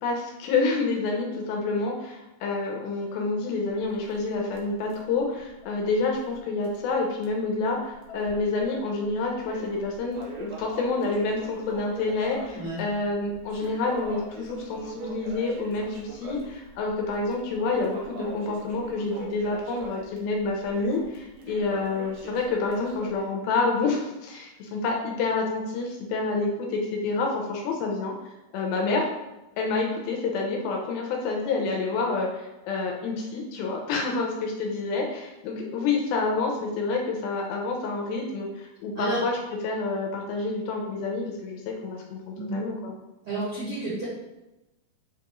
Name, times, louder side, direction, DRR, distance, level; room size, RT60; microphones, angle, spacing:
voice 1, 0.0-28.2 28.5-29.1 29.6-39.4 39.6-42.9, left 3 dB, 80° left, 0 dB, 2.3 m, -28 dB
Crackle, 3.7-6.4 6.7-6.8 7.2-7.3 8.0-8.6 9.0-23.3, right 2 dB, 85° right, 2.8 m, -42 dB
voice 2, 43.2-44.0, right 2 dB, 60° right, -11 dB, 1.4 m, -30 dB
6.8 x 2.3 x 2.9 m, 0.99 s
omnidirectional pair, 4.6 m